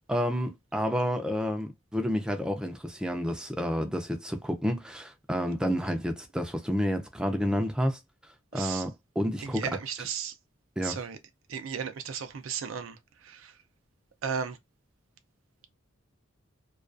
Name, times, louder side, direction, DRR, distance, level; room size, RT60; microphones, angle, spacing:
voice 1, 0.0-8.0 8.5-8.9 9.2-9.7 10.8-11.0, equal, 5° right, 0.4 m, -30 dB
voice 2, 8.5-8.9 9.4-10.3 10.8-11.2 11.5-13.6 14.2-14.6, right 7 dB, 90° right, 0.5 m, -35 dB
2.3 x 2.3 x 2.4 m
head